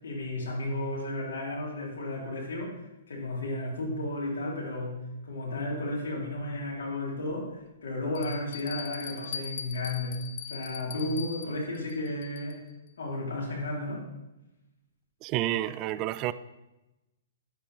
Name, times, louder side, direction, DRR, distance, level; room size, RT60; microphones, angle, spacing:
voice 1, 0.0-2.8 3.1-5.0 5.2-10.2 10.5-12.6 13.0-14.0, left 2 dB, 75° left, -3 dB, 3.5 m, -33 dB
Bell, 6.5-6.6 7.3-7.4 8.2-12.7, left 7 dB, 55° left, 0.8 m, -41 dB
voice 2, 15.2-16.3, right 14 dB, 35° right, 15 dB, 0.4 m, -29 dB
10.5 x 7.5 x 3.5 m, 0.97 s
hypercardioid pair, 135°, 0 cm